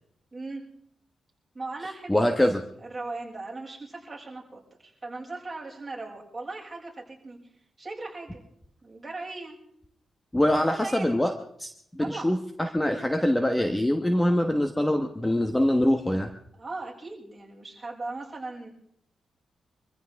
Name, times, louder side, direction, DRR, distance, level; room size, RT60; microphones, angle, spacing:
voice 1, 0.3-0.6 1.5-7.4 7.8-8.4 8.8-9.6 10.6-11.2 12.0-12.4 15.1-15.2 16.5-18.7, right 3 dB, 20° right, -4 dB, 6.3 m, -38 dB
voice 2, 2.1-2.6 10.3-11.3 11.6-11.7 12.0-16.3, left 1 dB, 10° left, 6 dB, 1.1 m, -24 dB
25.0 x 15.0 x 3.5 m, 0.71 s
cardioid pair, 90°, 0 cm